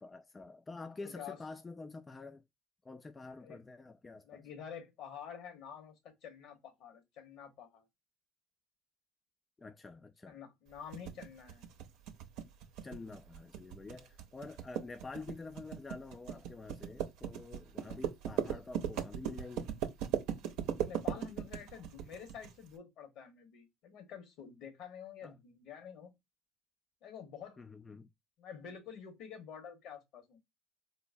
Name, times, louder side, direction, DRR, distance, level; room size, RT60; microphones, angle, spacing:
voice 1, 0.0-2.4 2.8-4.4 9.6-10.4 12.8-19.8 25.2-25.3 27.6-28.1, left 3 dB, 25° left, 0.3 m, -48 dB
voice 2, 1.0-1.4 3.4-3.6 4.2-5.9 6.2-7.8 10.3-11.7 20.8-26.1 27.0-27.6 28.4-30.4, left 8 dB, 65° left, 1.1 m, -49 dB
sound 1, 10.9-22.5, right 9 dB, 70° right, 0.6 m, -38 dB
3.8 x 2.0 x 2.6 m
hypercardioid pair, 70°, 0 cm